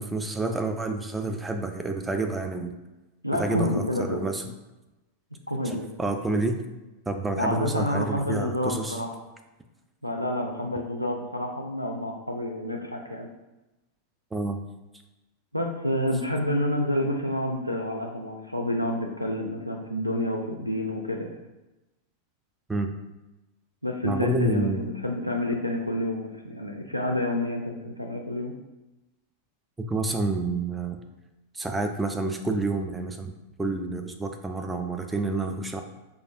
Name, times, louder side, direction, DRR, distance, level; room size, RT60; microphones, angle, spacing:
voice 1, 0.0-2.8 3.4-3.8 4.1-4.4 5.7-6.6 7.1-9.0 14.3-14.6 22.7-22.9 24.0-24.9 29.9-31.0 31.5-35.8, right 3 dB, 10° right, 5 dB, 0.3 m, -29 dB
voice 2, 3.2-4.2 5.5-5.8 7.4-9.2 10.0-13.3 15.5-21.4 23.8-28.6, left 1 dB, 90° left, 1 dB, 0.3 m, -28 dB
4.7 x 2.4 x 2.5 m, 1.0 s
figure-of-eight pair, 90°, 0 cm